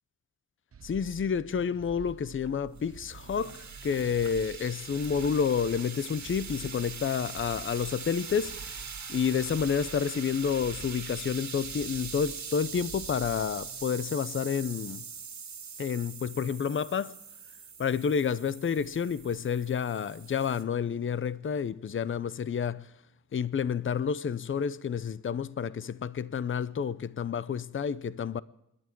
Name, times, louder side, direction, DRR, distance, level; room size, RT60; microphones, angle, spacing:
sound 1, 0.7-13.8, right 5 dB, 50° right, 0.8 m, -49 dB
voice 1, 0.8-8.8 9.1-15.0 15.8-17.1 17.8-22.9 23.3-28.4, left 7 dB, 40° left, 0.6 m, -30 dB
sound 2, 2.4-20.6, right 6 dB, 65° right, 1.9 m, -42 dB
26.5 x 11.5 x 4.5 m
wide cardioid pair, 130°, 30 cm